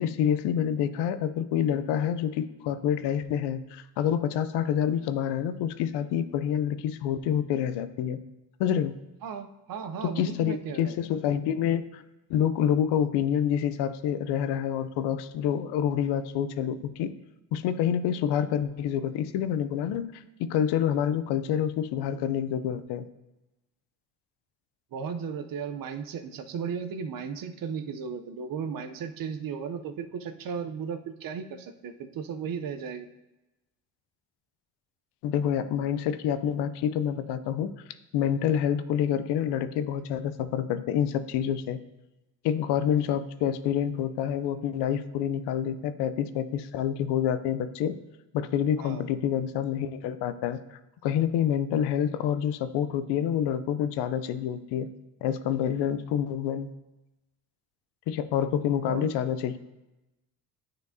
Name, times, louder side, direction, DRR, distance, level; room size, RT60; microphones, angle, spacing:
voice 1, 0.0-8.2 8.6-9.0 10.0-12.0 12.3-17.1 17.5-23.0 35.2-37.7 38.1-41.8 42.4-48.0 48.3-50.6 51.0-54.9 55.2-56.7 58.1-59.6, left 9 dB, 80° left, 12 dB, 0.6 m, -27 dB
voice 2, 9.2-11.0 24.9-33.1 48.8-49.0 58.9-59.1, right 6 dB, 55° right, 8 dB, 0.7 m, -35 dB
9.6 x 4.4 x 2.7 m, 1.0 s
supercardioid pair, 80°, 40 cm